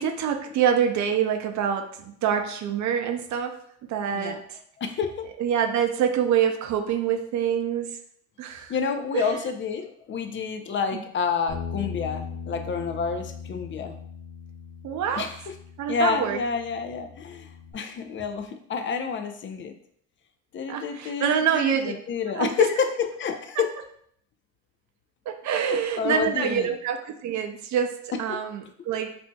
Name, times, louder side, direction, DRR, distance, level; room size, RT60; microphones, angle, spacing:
voice 1, 0.0-3.6 3.9-4.6 5.4-8.0 8.4-8.7 9.1-9.3 10.9-11.0 14.8-15.3 15.8-16.4 20.7-21.9 22.4-22.5 25.3-29.2, right 8 dB, 70° right, 5 dB, 0.5 m, -26 dB
voice 2, 4.8-5.3 8.7-14.0 15.2-15.4 15.9-19.7 20.5-23.7 25.5-26.7 28.3-28.4, left 6 dB, 40° left, 6 dB, 0.5 m, -29 dB
Bass guitar, 11.5-17.7, left 6 dB, 80° left, 0.8 m, -39 dB
4.2 x 2.7 x 2.2 m, 0.66 s
cardioid pair, 90°, 30 cm